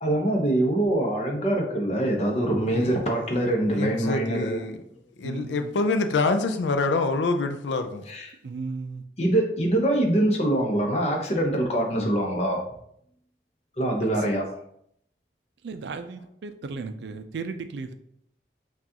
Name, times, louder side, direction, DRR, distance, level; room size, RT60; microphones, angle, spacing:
voice 1, 0.0-4.6 8.1-8.3 9.2-12.6 13.8-14.4, right 1 dB, 35° left, 0.8 m, -24 dB
voice 2, 2.6-3.1 3.7-4.8 5.2-8.0, left 3 dB, 85° left, 0.4 m, -26 dB
voice 3, 5.2-5.7 8.4-9.0 15.6-17.9, right 4 dB, 75° right, 0.4 m, -35 dB
5.9 x 2.4 x 2.8 m
head